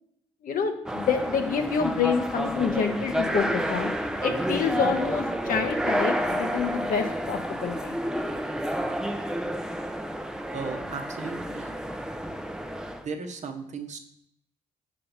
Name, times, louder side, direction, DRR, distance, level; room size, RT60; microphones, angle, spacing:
voice 1, 0.4-3.9 4.2-8.0, left 6 dB, 60° left, 5 dB, 0.9 m, -27 dB
sound 1, 0.8-13.0, equal, 5° right, 0.6 m, -30 dB
voice 2, 10.5-11.7 13.0-14.0, right 4 dB, 50° right, 5 dB, 0.9 m, -36 dB
6.8 x 2.9 x 5.2 m, 0.74 s
supercardioid pair, 60°, 16 cm